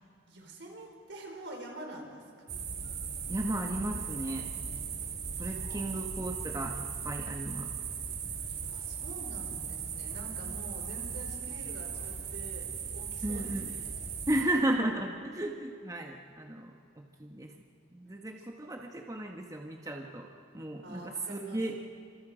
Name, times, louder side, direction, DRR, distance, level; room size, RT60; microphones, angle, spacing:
voice 1, 0.3-2.6 5.3-6.1 8.3-13.9 18.4-18.5 20.8-21.6, right 1 dB, 75° right, 1 dB, 4.8 m, -47 dB
sound 1, 2.5-14.4, right 6 dB, 60° right, 2.9 m, -38 dB
voice 2, 3.3-4.5 5.4-7.8 13.2-13.7 14.3-17.5 17.9-20.3 20.5-21.8, right 1 dB, 20° right, 2 dB, 1.3 m, -34 dB
29.0 x 27.0 x 5.1 m, 2.3 s
head